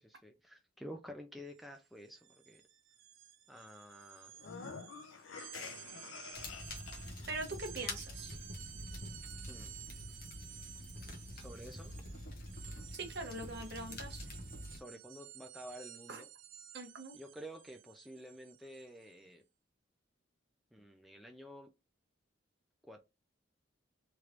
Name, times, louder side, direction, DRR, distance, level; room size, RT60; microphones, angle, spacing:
voice 1, 0.0-2.6 3.5-4.3 9.5-9.7 11.3-11.9 14.7-16.3 17.1-19.4 20.7-21.7 22.8-23.0, equal, ahead, 0.3 m, -50 dB
sound 1, 1.5-1.7 2.0-19.2, right 11 dB, 75° right, 0.5 m, -54 dB
sound 2, 4.3-7.3, left 5 dB, 75° left, 0.6 m, -48 dB
sound 3, 6.3-14.8, left 1 dB, 45° left, 0.9 m, -46 dB
voice 2, 7.3-8.4 12.9-14.3 16.1-16.2 16.7-17.2, right 2 dB, 55° right, 0.8 m, -42 dB
3.2 x 3.1 x 2.4 m
head